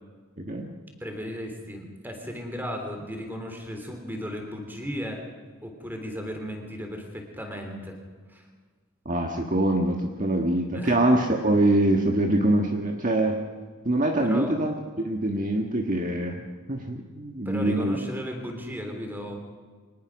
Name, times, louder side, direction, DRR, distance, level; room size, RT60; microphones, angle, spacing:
voice 1, 0.4-0.7 9.0-13.4 13.8-16.4 16.7-18.0, right 1 dB, 35° right, 2 dB, 1.6 m, -24 dB
voice 2, 1.0-5.2 5.6-8.0 8.3-8.5 10.7-11.0 14.2-14.5 17.5-19.4, equal, 10° right, 3 dB, 3.6 m, -35 dB
24.5 x 20.0 x 6.3 m, 1.5 s
head